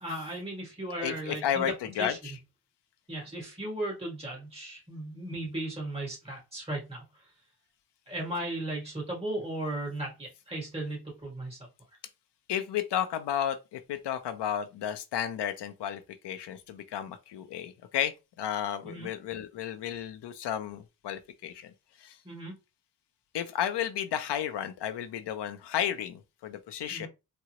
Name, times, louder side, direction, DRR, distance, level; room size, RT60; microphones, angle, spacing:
voice 1, 0.0-1.7 2.0-2.2 3.1-7.0 8.1-11.6 18.8-19.1 22.2-22.5 26.9-27.1, right 1 dB, 15° right, 1.7 m, -36 dB
voice 2, 1.0-2.4 12.5-21.7 22.0-22.2 23.3-27.1, left 10 dB, 85° left, 0.5 m, -33 dB
3.7 x 2.0 x 2.9 m
wide cardioid pair, 155°, 40 cm